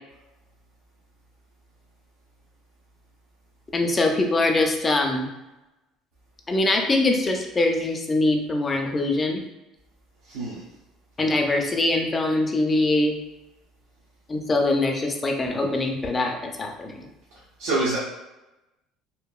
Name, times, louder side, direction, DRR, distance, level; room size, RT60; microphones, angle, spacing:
voice 1, 3.7-5.3 6.5-9.4 11.2-13.1 14.3-17.1, left 2 dB, 20° left, 2 dB, 0.4 m, -23 dB
voice 2, 10.3-10.6 17.6-18.0, right 2 dB, 85° right, -8 dB, 0.7 m, -25 dB
2.7 x 2.5 x 2.3 m, 1.0 s
cardioid pair, 145°, 0 cm